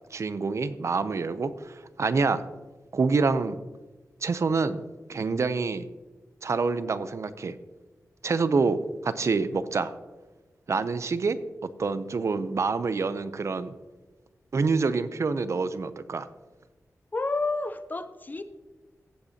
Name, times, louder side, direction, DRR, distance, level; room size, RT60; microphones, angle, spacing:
voice 1, 0.1-2.4 2.9-3.6 4.2-4.8 5.1-5.9 6.4-7.5 8.2-9.9 10.7-11.4 11.8-13.7 14.5-16.3, right 4 dB, 55° right, 13 dB, 0.6 m, -26 dB
voice 2, 17.1-18.4, left 3 dB, 30° left, 11 dB, 0.6 m, -30 dB
14.5 x 7.9 x 2.8 m, 1.2 s
wide cardioid pair, 90°, 6 cm